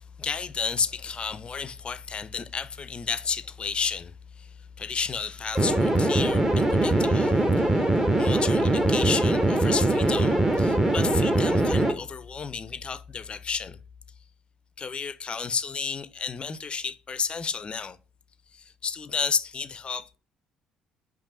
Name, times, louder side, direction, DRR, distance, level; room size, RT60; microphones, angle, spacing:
voice 1, 0.2-4.1 4.4-4.5 4.8-7.4 8.2-13.8 14.8-18.0 18.8-20.2, left 5 dB, 35° left, 0.4 m, -32 dB
sound 1, 5.5-11.9, right 2 dB, 20° right, 0.9 m, -22 dB
5.2 x 2.6 x 3.9 m
hypercardioid pair, 50°, 3 cm